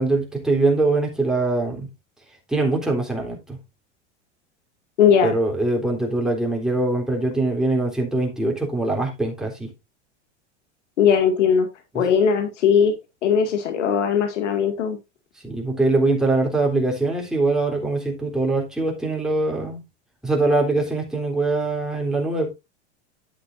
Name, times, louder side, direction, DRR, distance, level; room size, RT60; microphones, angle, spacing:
voice 1, 0.0-1.9 2.5-3.6 5.2-9.7 15.4-19.8 20.2-22.5, right 2 dB, ahead, 3.6 m, -22 dB
voice 2, 5.0-5.3 11.0-11.7 11.9-12.9 13.2-15.0, left 7 dB, 85° left, 2.2 m, -19 dB
10.5 x 7.9 x 2.6 m
hypercardioid pair, 105°, 35 cm